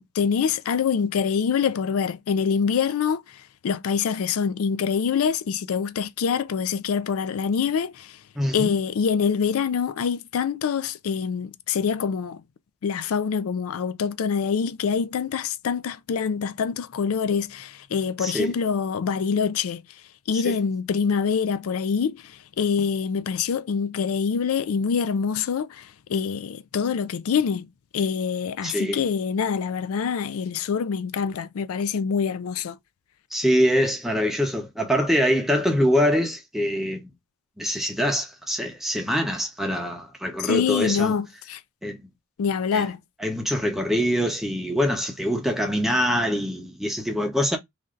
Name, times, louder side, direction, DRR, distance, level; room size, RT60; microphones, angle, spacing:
voice 1, 0.0-8.2 8.5-12.4 12.8-19.8 20.3-27.7 27.9-32.8 40.4-41.6 42.4-43.0, left 6 dB, 85° left, 0.4 m, -25 dB
voice 2, 8.4-8.7 18.2-18.5 20.4-20.6 28.6-29.0 33.3-37.0 37.6-41.1 41.8-42.0 42.7-42.9 43.2-47.6, equal, ahead, 0.8 m, -24 dB
3.2 x 2.6 x 3.7 m
head